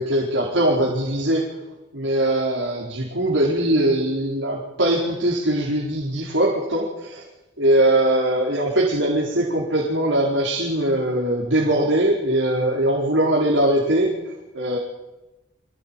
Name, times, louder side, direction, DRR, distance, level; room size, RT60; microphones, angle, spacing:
voice 1, 0.0-1.5 1.9-7.2 7.6-14.8, right 1 dB, 90° right, -3 dB, 4.4 m, -21 dB
25.5 x 16.5 x 8.9 m, 1.0 s
head